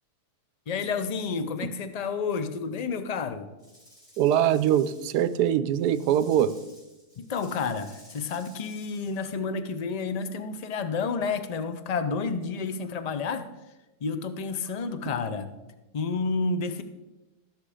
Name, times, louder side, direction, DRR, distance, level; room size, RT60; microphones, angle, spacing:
voice 1, 0.7-3.5 7.2-13.5 14.0-15.5 15.9-16.8, left 4 dB, 45° left, 9 dB, 0.5 m, -30 dB
Rattle / Rattle (instrument), 3.6-9.1, equal, 25° left, 4.8 m, -55 dB
voice 2, 4.2-6.5, right 10 dB, 85° right, 15 dB, 1.2 m, -23 dB
14.0 x 6.2 x 5.0 m, 1.1 s
omnidirectional pair, 1.7 m